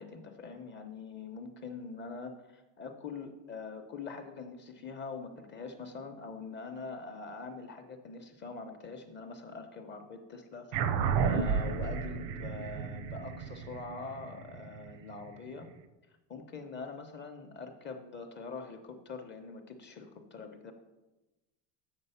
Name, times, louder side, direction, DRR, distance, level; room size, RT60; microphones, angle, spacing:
voice 1, 0.0-10.8 11.2-15.7 16.3-20.7, left 4 dB, 25° left, 5 dB, 0.7 m, -44 dB
sound 1, 10.7-15.5, right 6 dB, 85° right, 0.9 m, -32 dB
7.4 x 6.8 x 5.5 m, 1.0 s
cardioid pair, 160°, 43 cm